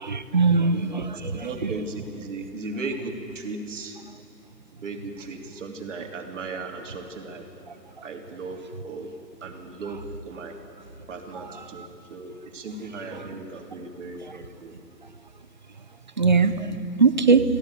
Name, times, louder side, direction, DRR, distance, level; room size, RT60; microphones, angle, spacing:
voice 1, 0.0-1.3 16.2-16.5 17.0-17.4, right 4 dB, 30° right, 12 dB, 0.6 m, -20 dB
voice 2, 1.3-4.0 4.8-7.5 8.0-9.1 9.4-10.0 10.3-10.6 11.1-14.7, right 3 dB, 45° right, 3 dB, 2.8 m, -36 dB
23.5 x 15.5 x 8.2 m, 2.6 s
figure-of-eight pair, 140°, 50 cm